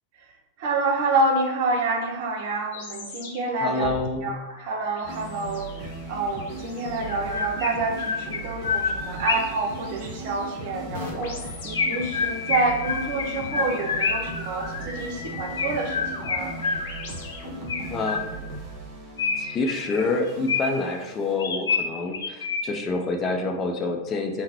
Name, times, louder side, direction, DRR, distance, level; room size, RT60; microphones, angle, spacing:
voice 1, 0.6-3.9 4.2-5.7 6.1-16.6, right 3 dB, 50° right, 3 dB, 0.7 m, -28 dB
sound 1, 2.7-18.0, left 5 dB, 50° left, 0.9 m, -40 dB
voice 2, 3.6-4.4 17.9-18.2 19.4-24.4, left 3 dB, 25° left, 3 dB, 0.6 m, -27 dB
sound 2, 5.0-21.8, right 2 dB, 30° right, 1.1 m, -38 dB
Chirp tweet, 6.2-6.3 7.0-9.7 11.7-14.4 15.6-17.2 17.7-18.6 19.2-20.9 21.4-22.9, left 5 dB, 75° left, 0.4 m, -28 dB
3.8 x 2.1 x 4.3 m, 1.0 s
figure-of-eight pair, 95°, 0 cm